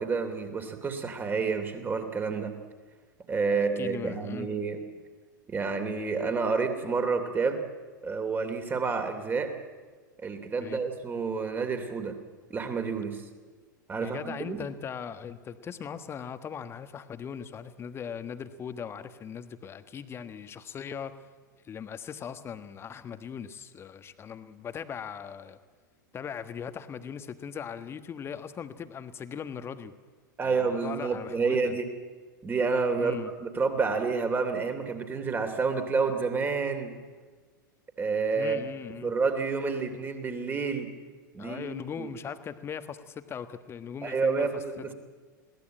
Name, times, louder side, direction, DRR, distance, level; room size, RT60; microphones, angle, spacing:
voice 1, 0.0-2.5 3.3-4.8 5.5-7.6 8.0-9.5 10.2-12.2 12.5-13.2 13.9-14.6 30.4-31.9 32.4-36.9 38.0-38.6 39.0-40.9 41.3-42.1 44.0-44.9, right 4 dB, 20° right, 7 dB, 3.0 m, -29 dB
voice 2, 3.5-4.5 10.6-10.8 14.0-21.1 21.6-25.6 26.1-29.9 30.4-31.8 33.0-33.3 38.3-39.1 41.4-44.9, left 7 dB, 25° left, 11 dB, 1.4 m, -39 dB
22.0 x 17.0 x 8.8 m, 1.4 s
figure-of-eight pair, 95°, 11 cm